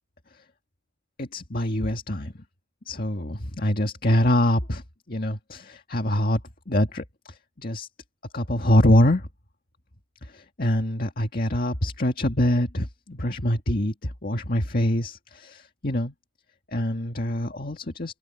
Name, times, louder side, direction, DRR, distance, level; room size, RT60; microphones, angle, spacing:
voice 1, 1.2-2.3 2.9-4.8 5.1-6.4 6.7-7.0 7.6-7.9 8.3-9.3 10.3-16.1 16.7-18.2, left 1 dB, 50° left, 1.9 m, -24 dB
head